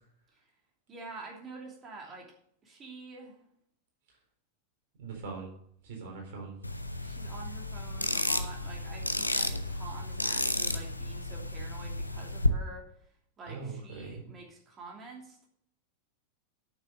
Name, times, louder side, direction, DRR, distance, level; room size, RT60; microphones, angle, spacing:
voice 1, 0.9-2.3 2.6-3.4 7.0-15.5, right 3 dB, 25° right, -1 dB, 3.0 m, -47 dB
voice 2, 5.0-5.5 5.8-6.6 9.4-9.7 13.5-14.2, right 4 dB, 55° right, 1 dB, 4.0 m, -41 dB
sound 1, 6.6-12.5, left 1 dB, 85° left, 0.7 m, -32 dB
8.9 x 7.0 x 6.6 m, 0.67 s
figure-of-eight pair, 90°, 0 cm